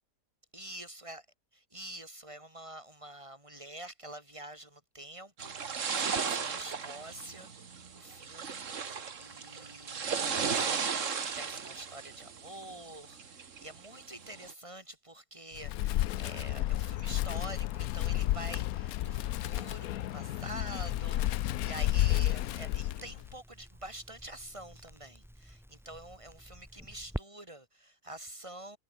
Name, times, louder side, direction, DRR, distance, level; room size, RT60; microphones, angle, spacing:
voice 1, 0.5-1.2 1.7-28.8, right 1 dB, 20° right, 5.6 m, -47 dB
sound 1, 5.4-14.5, right 6 dB, 50° right, 1.9 m, -36 dB
Wind, 15.5-23.3, left 14 dB, 70° left, 1.0 m, -31 dB
Crackle, 17.7-27.2, equal, ahead, 2.1 m, -49 dB
omnidirectional pair, 1.7 m